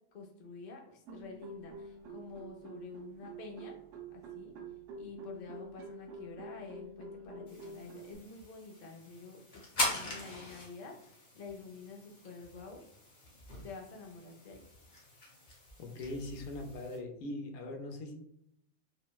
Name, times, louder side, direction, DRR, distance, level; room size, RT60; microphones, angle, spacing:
voice 1, 0.1-3.8 4.1-4.5 5.0-12.8 13.6-14.6, left 4 dB, 70° left, 1 dB, 0.4 m, -49 dB
sound 1, 1.1-8.2, right 2 dB, 75° right, 0.9 m, -47 dB
sound 2, 7.5-17.0, left 1 dB, 45° left, 0.8 m, -42 dB
voice 2, 15.8-18.2, left 2 dB, 85° left, 4 dB, 1.0 m, -41 dB
3.9 x 2.0 x 2.2 m, 0.75 s
omnidirectional pair, 1.4 m